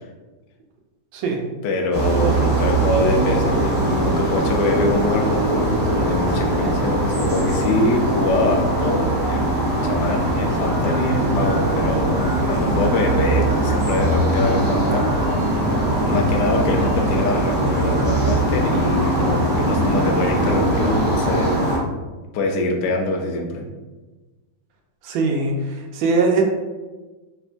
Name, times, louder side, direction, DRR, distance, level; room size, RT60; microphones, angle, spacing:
voice 1, 1.1-1.5 25.0-26.4, right 3 dB, 80° right, 2 dB, 1.4 m, -21 dB
voice 2, 1.6-9.4 9.8-12.2 12.5-15.3 16.0-21.6 22.3-23.6, left 2 dB, 75° left, 3 dB, 1.0 m, -24 dB
sound 1, 1.9-21.8, right 1 dB, 40° right, 1.2 m, -20 dB
3.3 x 2.8 x 2.5 m, 1.2 s
omnidirectional pair, 2.1 m